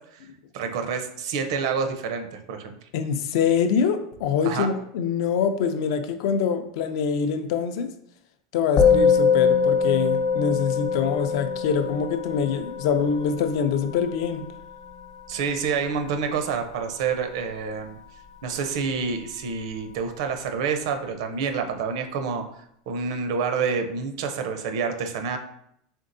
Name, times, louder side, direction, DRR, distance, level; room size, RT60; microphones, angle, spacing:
voice 1, 0.5-2.8 4.5-4.7 15.3-18.0 18.4-22.4 22.9-25.4, right 5 dB, 65° right, 6 dB, 0.6 m, -28 dB
voice 2, 2.9-7.9 8.5-14.4, left 7 dB, 60° left, 9 dB, 0.4 m, -24 dB
Musical instrument, 8.8-18.3, left 5 dB, 45° left, 0.8 m, -25 dB
4.3 x 3.5 x 2.6 m, 0.73 s
supercardioid pair, 160°, 3 cm